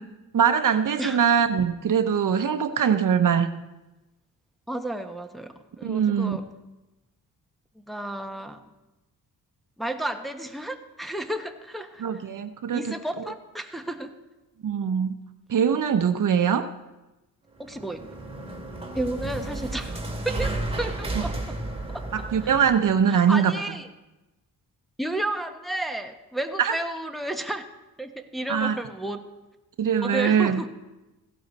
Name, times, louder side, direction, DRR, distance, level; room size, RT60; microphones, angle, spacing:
voice 1, 0.3-3.5 5.8-6.4 12.0-12.9 14.6-15.1 15.5-16.7 21.1-21.2 22.1-23.5 26.6-26.7 28.5-28.7 29.8-30.6, right 7 dB, 55° right, 8 dB, 0.9 m, -22 dB
voice 2, 1.0-1.3 4.7-6.4 7.9-8.6 9.8-12.0 12.7-14.1 17.6-18.0 18.9-21.6 21.9-22.1 23.1-23.9 25.0-27.6 28.0-29.2 30.0-30.7, right 1 dB, ahead, 4 dB, 1.3 m, -32 dB
sound 1, 17.5-23.0, right 2 dB, 15° right, 2.5 m, -33 dB
16.5 x 12.0 x 4.1 m, 1.0 s
cardioid pair, 65°, 38 cm